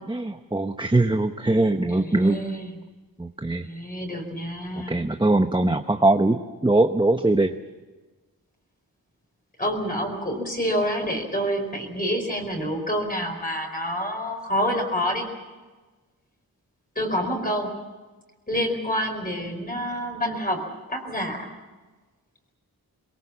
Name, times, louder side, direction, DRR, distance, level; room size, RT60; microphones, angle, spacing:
voice 1, 0.1-2.4 3.2-3.7 4.9-7.5, right 2 dB, 15° right, 6 dB, 0.9 m, -21 dB
voice 2, 1.9-2.8 3.6-5.0 9.6-15.3 16.9-17.8 18.5-20.6 20.9-21.5, equal, 25° left, 1 dB, 4.7 m, -27 dB
22.5 x 22.0 x 7.3 m, 1.3 s
wide cardioid pair, 105°, 36 cm